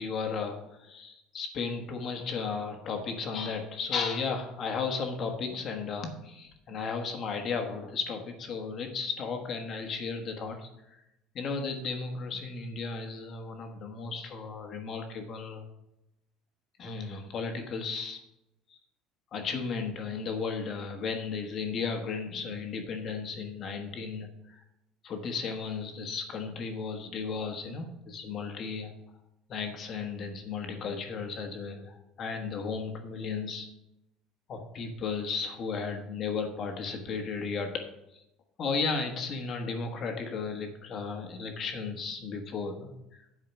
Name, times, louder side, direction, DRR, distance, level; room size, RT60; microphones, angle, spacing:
voice 1, 0.0-11.0 11.3-15.6 16.8-18.2 18.7-18.8 19.3-24.3 25.0-28.9 29.5-33.7 34.5-37.8 38.6-42.9, left 5 dB, 40° left, 4 dB, 1.3 m, -34 dB
8.7 x 4.9 x 5.9 m, 0.86 s
cardioid pair, 140°, 0 cm